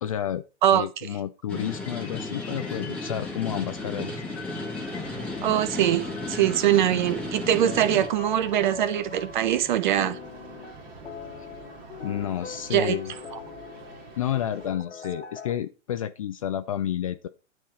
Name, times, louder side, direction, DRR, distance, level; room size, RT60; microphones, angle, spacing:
voice 1, 0.0-0.4 0.7-4.2 12.0-13.1 14.2-17.3, left 10 dB, 30° left, 0.4 m, -30 dB
sound 1, 1.5-9.7 10.0-15.5, left 6 dB, 60° left, 1.7 m, -43 dB
sound 2, 1.5-8.1, left 2 dB, 5° left, 1.8 m, -34 dB
sound 3, 4.8-14.7, right 3 dB, 25° right, 2.3 m, -46 dB
voice 2, 5.4-10.2 12.7-13.0 13.3-13.4, right 11 dB, 40° right, 0.8 m, -23 dB
10.5 x 3.7 x 4.9 m
figure-of-eight pair, 115°, 37 cm